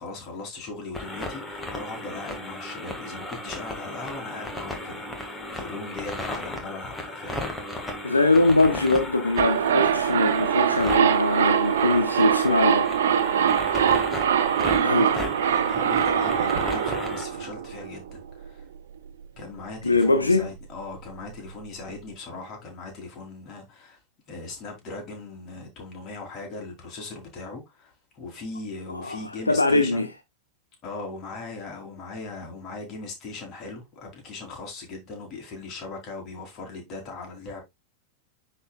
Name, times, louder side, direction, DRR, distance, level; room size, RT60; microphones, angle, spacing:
voice 1, 0.0-7.7 13.4-13.7 14.6-18.7 19.4-24.0 24.3-30.1 30.8-37.6, left 3 dB, 35° left, 3.3 m, -39 dB
sound 1, 0.9-17.3, left 1 dB, 10° left, 1.7 m, -35 dB
voice 2, 8.0-12.9 13.2-13.8 14.8-15.1 19.8-20.5 28.9-30.1, left 2 dB, 80° left, 0.8 m, -22 dB
sound 2, 9.4-18.2 18.4-18.5, right 8 dB, 60° right, 0.7 m, -23 dB
10.5 x 4.2 x 2.3 m
figure-of-eight pair, 90°, 0 cm